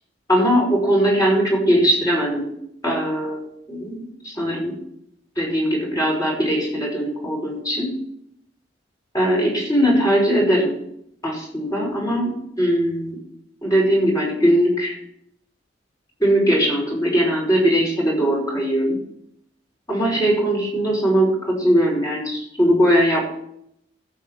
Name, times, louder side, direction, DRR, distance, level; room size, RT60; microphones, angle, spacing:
voice 1, 0.3-2.5 2.8-4.8 5.4-8.0 9.1-10.8 11.2-13.2 13.6-15.0 16.2-19.0 19.9-23.2, equal, 20° left, -3 dB, 5.0 m, -20 dB
15.5 x 7.7 x 4.7 m, 0.72 s
head